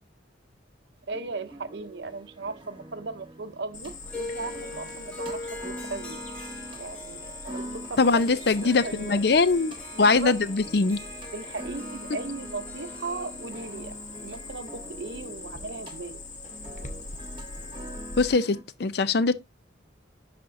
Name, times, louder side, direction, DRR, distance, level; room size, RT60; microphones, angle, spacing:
sound 1, 1.1-18.6, right 1 dB, 25° right, 1.2 m, -45 dB
voice 1, 1.1-6.2 6.8-8.4 8.8-9.2 9.9-10.4 11.3-13.9 14.2-16.2, right 3 dB, 65° right, 0.7 m, -37 dB
Cricket, 3.7-18.3, left 3 dB, 40° left, 1.1 m, -42 dB
Harp, 4.1-15.4, left 1 dB, 5° left, 2.6 m, -43 dB
voice 2, 8.0-11.0 18.2-19.3, left 4 dB, 55° left, 0.5 m, -22 dB
11.0 x 4.3 x 2.6 m
head